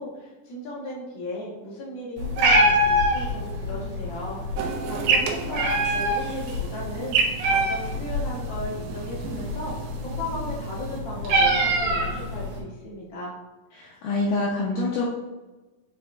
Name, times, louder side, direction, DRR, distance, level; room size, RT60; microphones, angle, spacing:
voice 1, 0.0-4.4 4.9-7.2 7.5-9.7 10.0-13.3, left 1 dB, 45° left, -6 dB, 1.5 m, -36 dB
Meow, 2.2-12.6, right 1 dB, 60° right, 3.1 m, -25 dB
sound 1, 4.6-11.0, right 5 dB, 85° right, 3.0 m, -31 dB
voice 2, 13.7-15.1, left 2 dB, 85° left, -4 dB, 1.9 m, -26 dB
6.1 x 5.6 x 3.4 m, 1.2 s
omnidirectional pair, 5.1 m